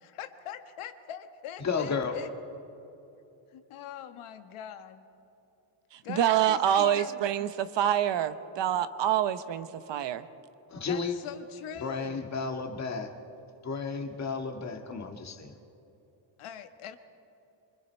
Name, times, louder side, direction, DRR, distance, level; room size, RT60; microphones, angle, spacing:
voice 1, 0.2-2.3 3.5-5.0 6.0-7.2 10.9-12.2 16.4-17.0, left 9 dB, 90° left, 8 dB, 1.5 m, -42 dB
voice 2, 1.6-2.2 10.7-11.1 11.8-13.1 13.6-15.5, left 5 dB, 35° left, 4 dB, 1.8 m, -32 dB
voice 3, 6.1-10.2, right 10 dB, 60° right, 12 dB, 0.9 m, -26 dB
26.0 x 24.5 x 4.5 m, 2.9 s
cardioid pair, 150°, 49 cm